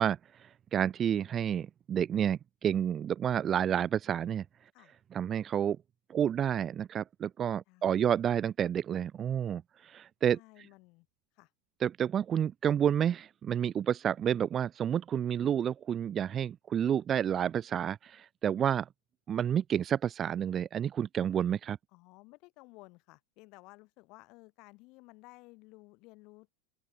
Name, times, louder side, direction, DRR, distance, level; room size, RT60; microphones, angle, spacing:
voice 1, 0.0-4.5 5.1-5.8 6.1-10.4 11.8-18.9 19.3-21.8, right 9 dB, 25° right, 0.3 m, -30 dB
voice 2, 7.7-8.2 10.3-11.1 11.4-11.5 21.9-26.5, left 24 dB, 40° left, 3.8 m, -55 dB
open air
figure-of-eight pair, 90°, 0 cm